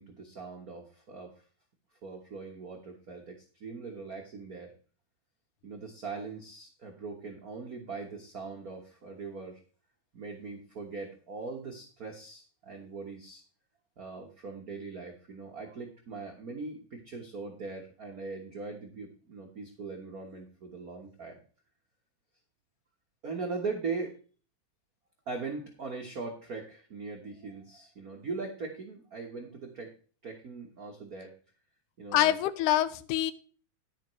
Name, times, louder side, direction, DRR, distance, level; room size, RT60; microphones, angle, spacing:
voice 1, 0.0-1.3 2.0-4.7 5.6-9.6 10.1-13.4 14.0-21.4 23.2-24.1 25.3-29.9 30.2-31.3 32.0-32.4, right 4 dB, 85° right, 1 dB, 0.8 m, -40 dB
voice 2, 32.1-33.3, left 12 dB, 85° left, 14 dB, 2.2 m, -25 dB
10.5 x 10.0 x 3.1 m, 0.39 s
omnidirectional pair, 3.6 m